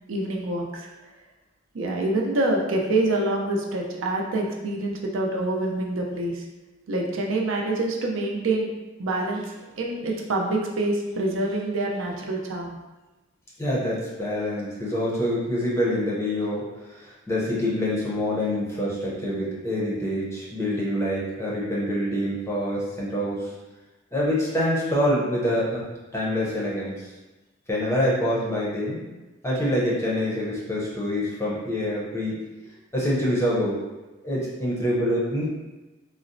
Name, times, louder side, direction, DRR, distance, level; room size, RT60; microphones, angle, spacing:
voice 1, 0.1-0.9 1.7-6.4 6.9-8.7 9.0-12.8, right 2 dB, 70° right, 0 dB, 0.5 m, -26 dB
voice 2, 13.6-23.5 24.1-25.8 26.1-26.9 27.7-29.0 29.4-32.4 32.9-33.8 34.2-35.5, equal, 15° left, -6 dB, 0.6 m, -26 dB
3.9 x 2.0 x 2.5 m, 1.1 s
head